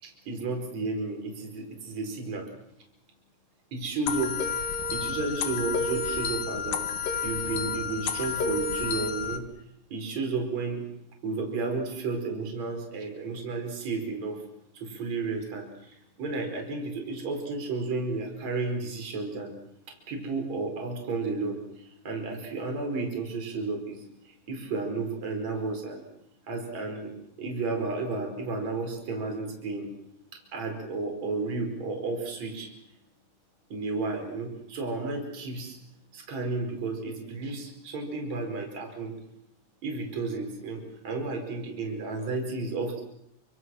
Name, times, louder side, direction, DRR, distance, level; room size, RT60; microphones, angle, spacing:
voice 1, 0.0-2.5 3.7-4.4 4.9-6.9 7.2-9.5 9.9-10.9 11.2-14.4 14.7-19.5 19.9-26.0 26.5-29.9 30.3-32.7 33.7-35.8 36.1-39.2 39.8-43.0, right 3 dB, 45° right, 3 dB, 5.9 m, -32 dB
sound 1, 4.1-9.4, left 5 dB, 70° left, 3.3 m, -30 dB
29.0 x 26.5 x 6.3 m, 0.77 s
omnidirectional pair, 4.3 m